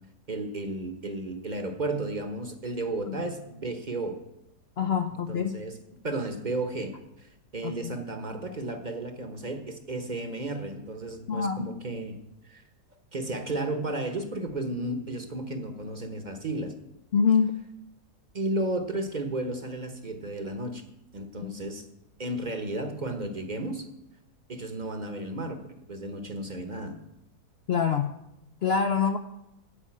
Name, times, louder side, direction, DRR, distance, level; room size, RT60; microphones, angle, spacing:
voice 1, 0.3-4.2 5.1-5.8 6.0-12.2 12.4-12.6 13.1-16.7 18.3-20.8 21.1-21.9 22.2-23.8 24.5-27.0, right 2 dB, 35° right, 6 dB, 0.9 m, -33 dB
voice 2, 4.8-5.5 7.6-8.0 11.3-11.7 17.1-17.6 21.4-21.5 27.7-28.1 28.6-29.2, left 6 dB, 75° left, 7 dB, 0.5 m, -25 dB
11.5 x 5.4 x 8.5 m, 0.87 s
omnidirectional pair, 1.7 m